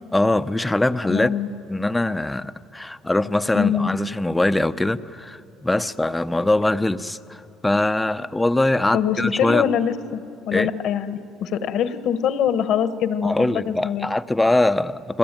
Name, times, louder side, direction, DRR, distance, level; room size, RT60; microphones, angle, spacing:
voice 1, 0.1-1.3 1.7-9.7 10.5-10.7 13.2-15.2, left 2 dB, 10° left, 12 dB, 0.8 m, -22 dB
voice 2, 1.1-1.5 3.5-4.0 8.9-14.1, left 8 dB, 65° left, 11 dB, 1.4 m, -24 dB
30.0 x 21.5 x 9.2 m, 2.7 s
supercardioid pair, 90°, 0 cm